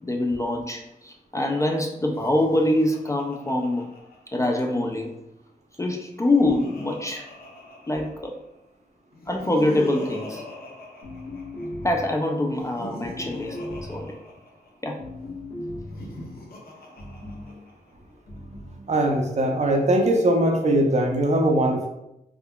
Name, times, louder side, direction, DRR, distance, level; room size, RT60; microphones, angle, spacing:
voice 1, 0.0-3.9 4.3-5.1 5.8-7.3 7.9-8.3 9.3-10.4 11.8-13.6 13.9-14.1 14.8-15.0, left 1 dB, 20° left, 1 dB, 0.3 m, -24 dB
Laughter, 2.0-4.8 5.9-8.5 9.1-11.9 12.5-14.9 15.8-17.9, left 2 dB, 70° left, 0.7 m, -41 dB
sound 1, 11.0-12.2 13.0-14.1 15.0-16.1 17.0-17.5 18.3-18.8, left 1 dB, 90° left, 1.5 m, -37 dB
voice 2, 18.9-21.9, right 1 dB, 45° right, 2 dB, 0.5 m, -21 dB
3.6 x 3.2 x 2.2 m, 0.86 s
wide cardioid pair, 130°, 16 cm